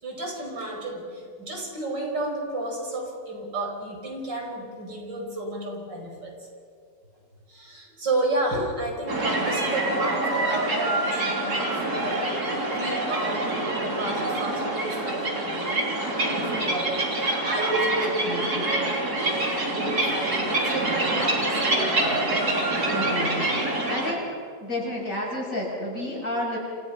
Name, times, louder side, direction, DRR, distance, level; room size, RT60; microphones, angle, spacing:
voice 1, 0.0-6.3 7.5-22.4 26.0-26.2, right 2 dB, 80° right, 1 dB, 5.8 m, -32 dB
sound 1, 9.1-24.1, right 2 dB, 60° right, 4.2 m, -26 dB
voice 2, 18.0-18.7 22.9-23.5 23.9-24.2 24.6-26.6, left 1 dB, 45° left, -2 dB, 7.5 m, -31 dB
29.0 x 28.5 x 5.7 m, 2.2 s
omnidirectional pair, 1.9 m